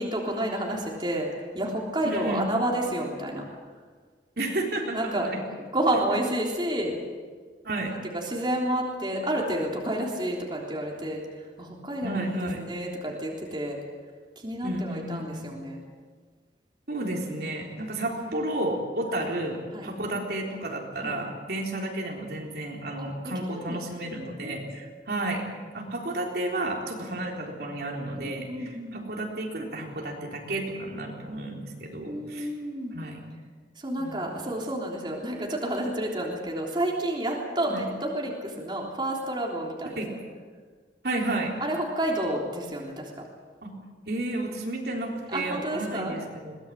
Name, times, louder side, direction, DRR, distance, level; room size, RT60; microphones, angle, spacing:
voice 1, 0.0-3.4 4.9-6.9 8.1-11.2 11.6-12.3 12.6-13.8 14.3-15.8 19.1-19.2 19.7-19.9 21.0-21.2 23.5-23.8 24.4-24.6 28.2-29.0 32.1-33.0 33.8-40.2 41.6-43.2 45.3-46.2, right 1 dB, 25° right, -2 dB, 3.4 m, -30 dB
voice 2, 2.0-2.5 4.4-5.5 6.1-6.2 7.6-7.9 12.0-12.6 14.6-15.5 16.9-25.4 25.7-32.5 32.9-33.2 34.0-34.2 37.7-37.8 40.0-40.1 41.0-41.5 43.6-43.7 44.1-46.6, right 1 dB, 60° right, -1 dB, 3.9 m, -32 dB
22.5 x 19.5 x 7.6 m, 1.6 s
head